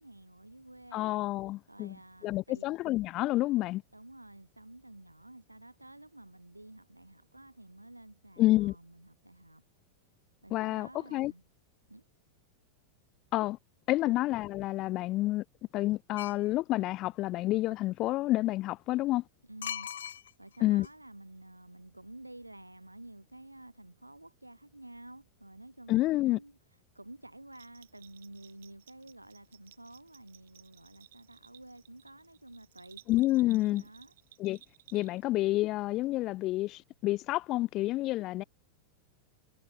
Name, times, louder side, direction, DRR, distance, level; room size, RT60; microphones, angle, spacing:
voice 1, 0.0-1.1 1.7-2.7 3.9-9.6 10.4-11.4 11.9-12.0 14.0-14.2 19.4-19.9 20.4-33.0 33.6-34.1, right 1 dB, 85° right, 2.5 m, -51 dB
voice 2, 0.9-1.9 2.2-3.8 8.4-8.7 10.5-11.3 13.3-13.6 13.9-15.4 15.7-19.2 20.6-20.9 25.9-26.4 33.1-33.8 34.4-34.6 34.9-38.4, left 17 dB, 35° left, 0.5 m, -29 dB
sound 1, 16.2-16.5 19.6-20.6 20.8-20.9, left 9 dB, 65° left, 1.3 m, -39 dB
Bell, 27.5-35.4, right 13 dB, 60° right, 2.6 m, -59 dB
figure-of-eight pair, 90°, 0 cm